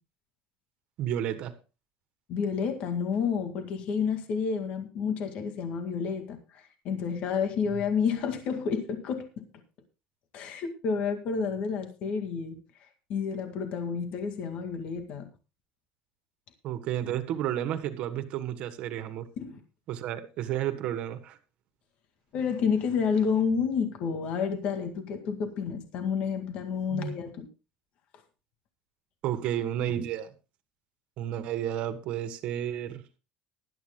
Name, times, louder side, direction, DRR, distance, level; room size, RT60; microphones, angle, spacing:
voice 1, 1.0-1.5 16.6-19.3 19.9-21.4 26.9-27.1 29.2-30.3 31.2-33.0, right 11 dB, 55° right, 1.6 m, -31 dB
voice 2, 2.3-9.4 10.3-15.3 19.4-19.6 22.3-27.5, left 6 dB, 55° left, 2.0 m, -30 dB
19.5 x 12.0 x 2.2 m
cardioid pair, 150°, 2 cm